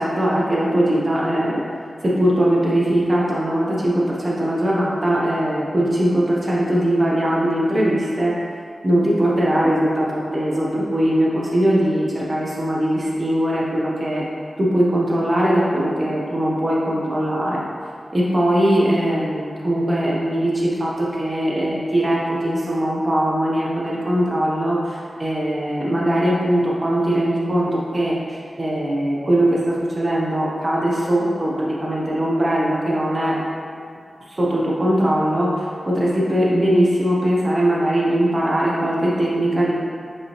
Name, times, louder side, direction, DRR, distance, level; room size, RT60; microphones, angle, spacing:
voice 1, 0.0-1.6 2.0-8.3 8.8-14.2 14.6-17.6 18.1-33.4 34.3-39.7, right 1 dB, 35° right, -5 dB, 0.8 m, -20 dB
5.2 x 3.5 x 2.9 m, 2.2 s
cardioid pair, 60°, 0 cm